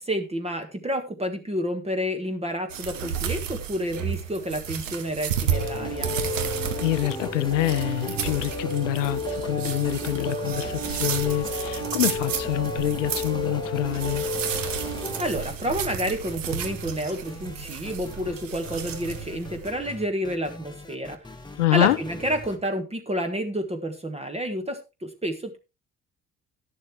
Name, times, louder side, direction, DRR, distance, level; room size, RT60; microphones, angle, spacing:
voice 1, 0.0-6.1 15.2-21.2 21.7-25.6, equal, 15° right, 1.6 m, -29 dB
sound 1, 2.7-19.7, right 8 dB, 80° right, 0.9 m, -33 dB
sound 2, 5.5-22.6, left 1 dB, 10° left, 1.5 m, -39 dB
sound 3, 5.5-15.2, left 1 dB, 45° right, 4.1 m, -33 dB
voice 2, 6.8-14.3 21.6-22.0, left 15 dB, 75° left, 0.6 m, -26 dB
11.0 x 11.0 x 3.1 m
figure-of-eight pair, 45°, 38 cm